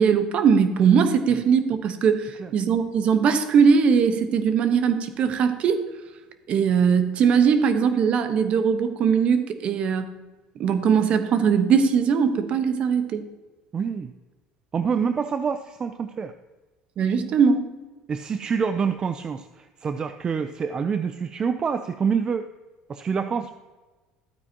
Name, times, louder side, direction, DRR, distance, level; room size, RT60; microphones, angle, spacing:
voice 1, 0.0-5.9 6.5-10.1 10.6-13.2 17.0-17.7, right 6 dB, 50° right, 9 dB, 1.1 m, -20 dB
voice 2, 13.7-14.1 14.7-16.3 18.1-22.5 22.9-23.5, right 6 dB, 30° right, 9 dB, 0.5 m, -26 dB
12.5 x 9.0 x 2.9 m, 1.2 s
supercardioid pair, 95°, 3 cm